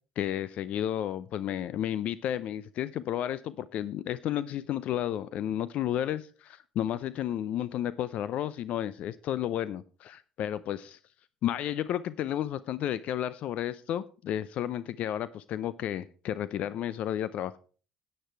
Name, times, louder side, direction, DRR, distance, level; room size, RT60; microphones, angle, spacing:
voice 1, 0.2-11.0 11.4-17.6, left 11 dB, 60° left, 17 dB, 0.5 m, -32 dB
10.0 x 8.8 x 4.5 m, 0.38 s
hypercardioid pair, 65°, 3 cm